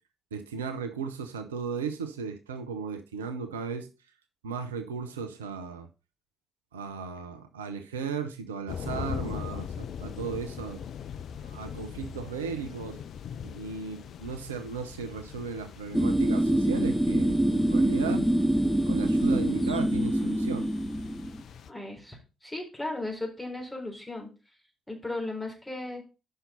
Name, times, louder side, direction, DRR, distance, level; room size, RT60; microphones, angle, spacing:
voice 1, 0.3-3.9 4.4-5.9 6.7-10.8 11.5-13.0 13.4-18.3 18.9-20.7, right 5 dB, 80° right, 0.6 m, -36 dB
sound 1, 8.7-21.7, left 8 dB, 55° left, 0.4 m, -41 dB
sound 2, 15.9-21.4, right 1 dB, 5° right, 0.7 m, -25 dB
voice 2, 21.7-24.3 24.9-26.0, left 2 dB, 10° left, 4.0 m, -36 dB
5.7 x 5.5 x 6.8 m
figure-of-eight pair, 45°, 0 cm